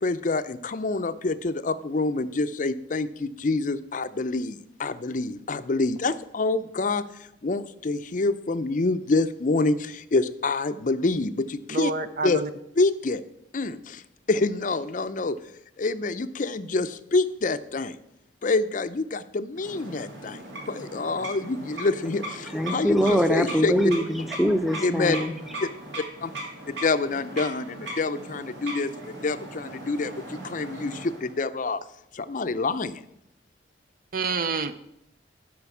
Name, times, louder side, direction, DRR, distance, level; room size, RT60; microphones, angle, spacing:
voice 1, 0.0-7.0 7.4-11.9 12.2-12.4 12.8-13.2 13.5-14.0 14.3-15.4 15.8-18.0 18.4-23.7 24.8-25.2 25.6-25.7 26.2-26.3 26.8-31.8 32.1-33.0, left 3 dB, 45° left, 12 dB, 0.5 m, -27 dB
voice 2, 11.7-12.5 34.1-34.8, right 4 dB, 50° right, 11 dB, 0.5 m, -28 dB
sound 1, 19.5-31.4, right 1 dB, 70° right, 2.7 m, -39 dB
voice 3, 22.5-25.3, equal, ahead, 7 dB, 0.7 m, -23 dB
11.5 x 5.1 x 7.1 m, 0.79 s
head